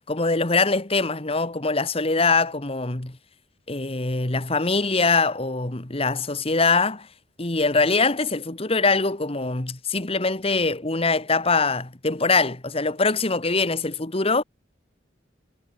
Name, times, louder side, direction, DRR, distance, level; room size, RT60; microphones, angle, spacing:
voice 1, 0.1-3.2 3.7-7.1 7.4-14.4, left 3 dB, 30° left, 1.6 m, -23 dB
head